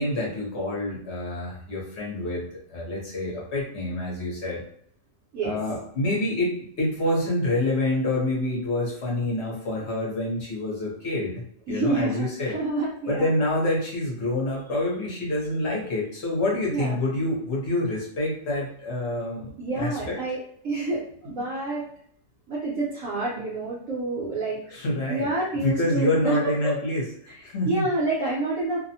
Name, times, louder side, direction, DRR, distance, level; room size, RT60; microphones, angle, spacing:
voice 1, 0.0-2.4 2.7-4.6 5.4-11.4 11.7-12.6 13.1-20.2 24.7-25.3 25.6-27.0 27.4-27.9, left 1 dB, 55° left, -3 dB, 0.9 m, -27 dB
voice 2, 11.7-13.3 16.7-17.0 19.6-21.9 22.5-24.7 25.1-26.8 27.3-28.8, right 2 dB, 60° right, -7 dB, 1.0 m, -28 dB
2.7 x 2.1 x 2.7 m, 0.65 s
omnidirectional pair, 1.7 m